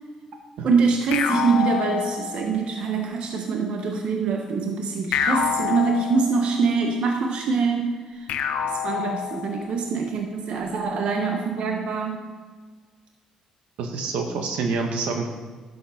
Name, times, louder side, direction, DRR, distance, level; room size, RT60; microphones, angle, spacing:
voice 1, 0.6-8.3 8.6-12.2, right 4 dB, 60° right, 2 dB, 1.3 m, -24 dB
sound 1, 1.1-2.7 5.1-6.7 8.3-9.8, left 8 dB, 80° left, 1.0 m, -27 dB
voice 2, 13.8-15.3, right 4 dB, 85° right, 3 dB, 1.7 m, -27 dB
11.5 x 7.6 x 5.2 m, 1.4 s
cardioid pair, 105°, 2 cm